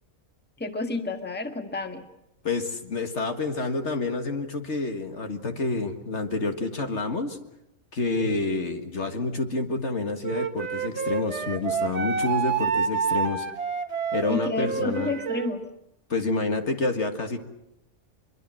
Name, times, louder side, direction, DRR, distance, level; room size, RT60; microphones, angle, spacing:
voice 1, 0.6-2.0 14.3-15.7, left 2 dB, 5° left, 6 dB, 1.5 m, -30 dB
voice 2, 2.4-7.4 7.9-13.5 14.1-15.1 16.1-17.4, left 3 dB, 55° left, 6 dB, 2.0 m, -28 dB
Wind instrument woodwind instrument, 10.2-15.5, right 6 dB, 50° right, 1.9 m, -28 dB
24.0 x 23.0 x 7.6 m, 0.85 s
omnidirectional pair, 1.5 m